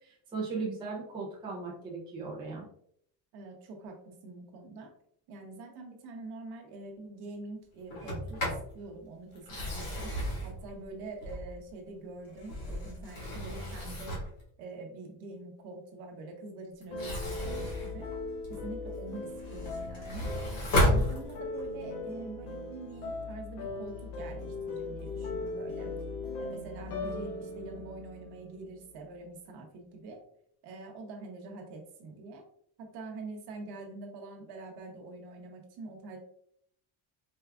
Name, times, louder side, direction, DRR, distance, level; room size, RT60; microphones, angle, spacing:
voice 1, 0.0-2.7, right 4 dB, 10° right, -3 dB, 0.4 m, -37 dB
voice 2, 3.3-4.9 5.3-10.2 10.4-14.2 14.6-18.1 18.5-20.3 20.8-25.9 26.4-30.2 30.6-32.5 32.8-36.2, right 2 dB, 65° right, 3 dB, 0.8 m, -45 dB
Sliding door, 7.9-8.7 9.4-11.7 12.2-14.4 16.8-18.7 19.2-21.7, left 1 dB, 50° left, 1.5 m, -33 dB
sound 1, 16.9-29.0, left 3 dB, 75° left, 1.1 m, -39 dB
4.5 x 2.3 x 2.2 m, 0.68 s
cardioid pair, 180°, 43 cm